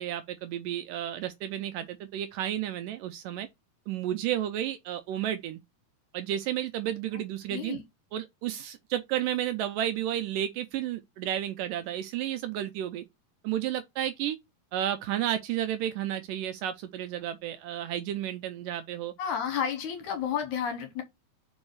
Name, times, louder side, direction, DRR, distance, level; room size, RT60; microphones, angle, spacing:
voice 1, 0.0-3.5 3.9-5.6 6.1-7.8 8.1-13.0 13.4-14.4 14.7-19.1, right 11 dB, 80° right, 2.0 m, -32 dB
voice 2, 7.5-7.8 19.2-21.0, left 8 dB, 70° left, 2.1 m, -31 dB
5.3 x 4.8 x 4.7 m
omnidirectional pair, 4.3 m